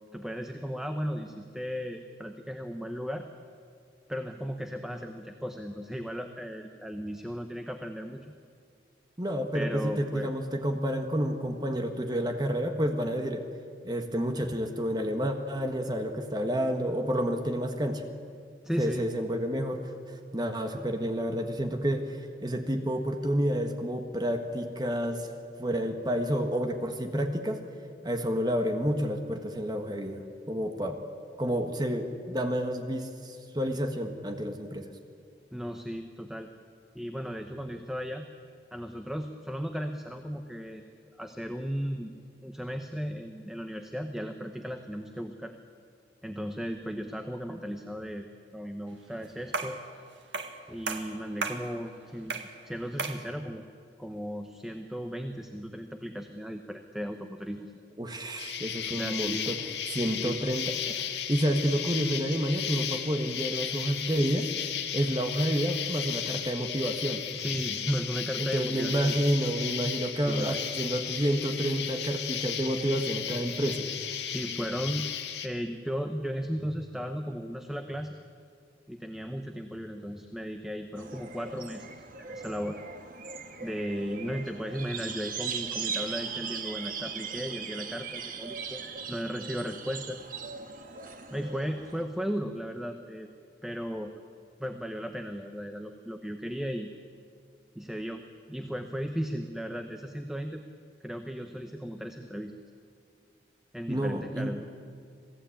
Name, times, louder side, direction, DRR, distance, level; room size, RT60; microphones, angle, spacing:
voice 1, 0.1-3.3 4.1-8.4 9.5-10.3 18.6-19.0 35.5-36.5 36.9-38.3 38.7-40.9 41.2-42.1 42.4-45.5 46.2-48.3 48.5-49.8 50.7-53.6 54.0-57.7 58.8-59.5 60.2-60.4 67.3-69.1 70.2-70.6 74.2-75.1 75.4-78.2 78.9-82.8 83.6-88.8 89.1-90.2 91.3-93.3 93.6-94.1 94.6-96.9 97.7-98.2 98.5-100.6 101.0-102.5 103.7-104.7, equal, ahead, 5 dB, 1.0 m, -36 dB
voice 2, 9.2-13.4 13.8-18.0 18.8-25.3 25.6-27.6 28.0-31.0 31.4-34.9 58.0-59.6 59.9-64.5 64.9-67.2 68.4-73.9 103.9-104.5, equal, 20° right, 5 dB, 1.5 m, -29 dB
sound 1, 49.5-49.8 50.3-50.6 50.9-51.7 52.3-52.6 53.0-53.3, right 4 dB, 85° right, 1.9 m, -34 dB
Insect, 58.4-75.5, left 9 dB, 65° left, 1.8 m, -35 dB
sound 2, 81.0-92.0, right 6 dB, 50° right, 1.7 m, -39 dB
27.0 x 18.0 x 8.7 m, 2.3 s
head